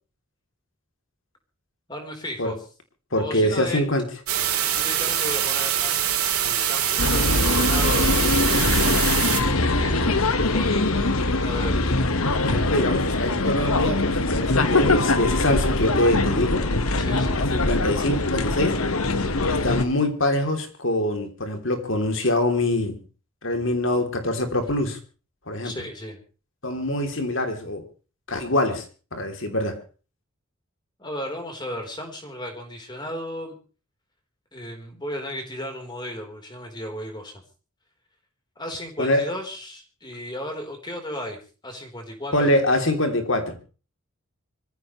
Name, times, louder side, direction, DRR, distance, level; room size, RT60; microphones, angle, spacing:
voice 1, 1.9-2.6 3.2-3.8 4.7-6.0 6.4-8.3 9.1-11.1 11.4-11.8 17.0-17.4 25.6-26.2 31.0-33.6 34.5-37.3 38.6-41.4 41.6-42.5, left 1 dB, 20° left, 3 dB, 4.1 m, -34 dB
voice 2, 3.1-4.0 12.4-16.7 17.3-18.8 19.4-23.0 23.4-25.0 25.5-25.7 26.6-27.8 28.3-28.8 29.1-29.8 39.0-39.3 42.3-43.6, left 1 dB, 60° left, 6 dB, 3.2 m, -24 dB
sound 1, 4.3-9.4, right 10 dB, 85° right, 3.5 m, -24 dB
sound 2, 7.0-19.8, left 2 dB, 80° left, 1.5 m, -22 dB
25.5 x 15.0 x 3.2 m, 0.36 s
head